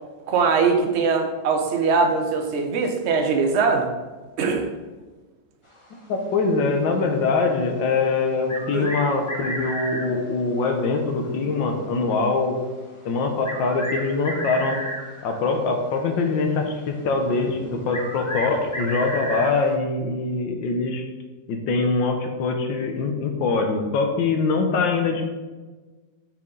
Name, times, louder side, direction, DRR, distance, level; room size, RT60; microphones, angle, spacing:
voice 1, 0.3-3.9 4.4-4.7 8.7-8.9, right 4 dB, 50° right, 4 dB, 0.9 m, -21 dB
voice 2, 6.1-12.6 13.0-14.8 15.2-21.0 21.5-25.2, left 4 dB, 90° left, 4 dB, 1.6 m, -23 dB
sound 1, 8.5-10.1 11.9-12.0 13.4-15.4 17.9-19.6, equal, 25° left, 0.8 m, -32 dB
7.2 x 4.8 x 3.8 m, 1.3 s
omnidirectional pair, 2.0 m